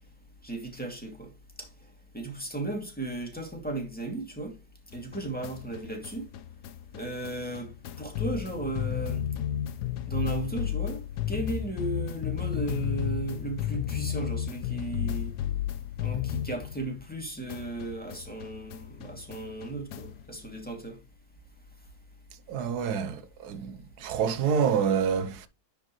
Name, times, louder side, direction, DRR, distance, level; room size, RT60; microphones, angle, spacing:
voice 1, 0.4-1.3 1.6-1.7 2.1-4.5 4.9-6.2 6.9-7.7 8.0-9.2 10.1-15.3 16.0-21.0, right 2 dB, 5° left, 2.2 m, -35 dB
sound 1, 4.9-17.2 17.5-20.3, left 11 dB, 80° left, 1.3 m, -33 dB
voice 2, 22.5-25.5, right 7 dB, 75° right, 1.3 m, -27 dB
10.5 x 5.1 x 3.1 m
omnidirectional pair, 1.7 m